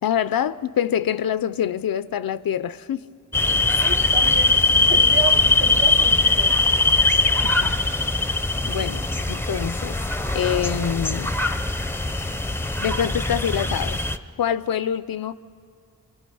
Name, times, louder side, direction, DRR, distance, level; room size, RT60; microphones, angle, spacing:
voice 1, 0.0-3.1 7.4-7.7 8.6-9.0 9.3-10.0 10.3-11.3 12.8-14.0 14.4-15.3, left 9 dB, 70° left, 16 dB, 0.5 m, -25 dB
sound 1, 3.3-14.2, left 3 dB, 5° left, 0.6 m, -21 dB
voice 2, 3.7-6.6 8.6-8.9, right 5 dB, 35° right, 6 dB, 1.3 m, -32 dB
25.0 x 23.5 x 5.4 m, 2.4 s
wide cardioid pair, 95°, 36 cm